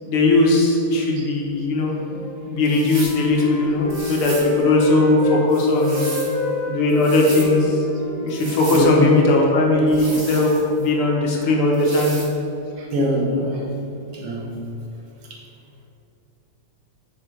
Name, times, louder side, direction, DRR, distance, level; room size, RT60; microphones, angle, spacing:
voice 1, 0.0-2.0 2.5-6.1 6.6-7.8 8.2-12.1, left 2 dB, 80° left, -1 dB, 2.2 m, -18 dB
Wind instrument woodwind instrument, 2.1-5.5 5.8-9.7, left 3 dB, 55° left, 2.1 m, -29 dB
sound 1, 2.6-3.2 3.9-4.5 5.5-6.4 6.9-7.5 8.3-8.9 9.9-10.9 11.7-12.3, right 2 dB, 35° right, 1.0 m, -35 dB
voice 2, 8.7-9.1 12.8-13.7 14.1-14.6, equal, 80° right, -1 dB, 2.2 m, -23 dB
6.9 x 6.8 x 5.0 m, 2.8 s
omnidirectional pair, 2.3 m